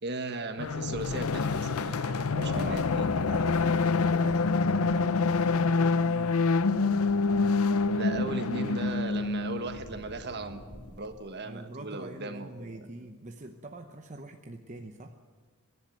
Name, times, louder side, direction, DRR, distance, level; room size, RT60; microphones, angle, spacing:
voice 1, 0.0-3.2 7.9-10.6 11.0-12.8, right 2 dB, 50° right, 8 dB, 1.5 m, -37 dB
sound 1, 0.6-10.9, left 1 dB, 90° left, 3.2 m, -49 dB
sound 2, 0.6-9.8, left 4 dB, 70° left, 0.6 m, -26 dB
voice 2, 2.3-6.6 11.4-15.2, right 2 dB, 35° right, 4 dB, 0.9 m, -44 dB
24.0 x 11.5 x 9.4 m, 1.5 s
head